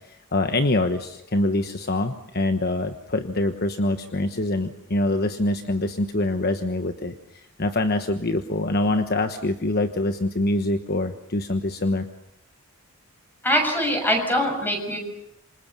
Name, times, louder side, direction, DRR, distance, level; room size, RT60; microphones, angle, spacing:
voice 1, 0.1-12.1, left 2 dB, 45° left, 7 dB, 1.2 m, -25 dB
voice 2, 13.4-15.0, equal, 10° left, 3 dB, 7.0 m, -23 dB
28.0 x 25.5 x 6.9 m, 0.79 s
head